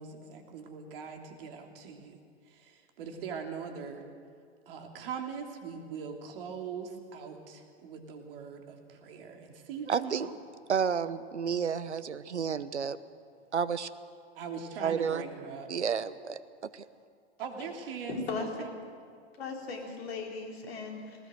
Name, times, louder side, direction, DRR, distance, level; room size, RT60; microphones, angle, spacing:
voice 1, 0.0-2.2 2.5-4.1 4.7-10.3 14.4-15.7 17.4-18.7, right 6 dB, 55° right, 3 dB, 3.0 m, -41 dB
voice 2, 9.9-10.3 10.7-13.0 13.5-13.9 14.8-15.2 15.7-16.8, right 6 dB, 80° right, 15 dB, 0.9 m, -31 dB
voice 3, 18.1-18.7 19.4-21.3, left 4 dB, 65° left, 2 dB, 3.9 m, -37 dB
19.5 x 18.5 x 7.9 m, 2.2 s
figure-of-eight pair, 100°, 34 cm